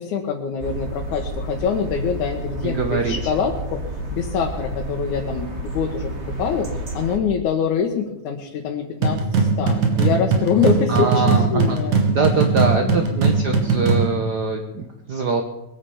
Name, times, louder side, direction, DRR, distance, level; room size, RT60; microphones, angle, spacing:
voice 1, 0.0-3.8 4.1-6.7 6.9-12.0 12.9-13.3, left 6 dB, 80° left, 1 dB, 2.8 m, -25 dB
sound 1, 0.6-7.2, right 1 dB, 25° right, 1.9 m, -30 dB
voice 2, 2.6-3.3 10.9-11.8 12.1-15.4, right 4 dB, 55° right, 4 dB, 1.2 m, -23 dB
sound 2, 9.0-14.1, right 4 dB, 85° right, 3.6 m, -19 dB
22.0 x 9.0 x 7.1 m, 0.94 s
omnidirectional pair, 3.4 m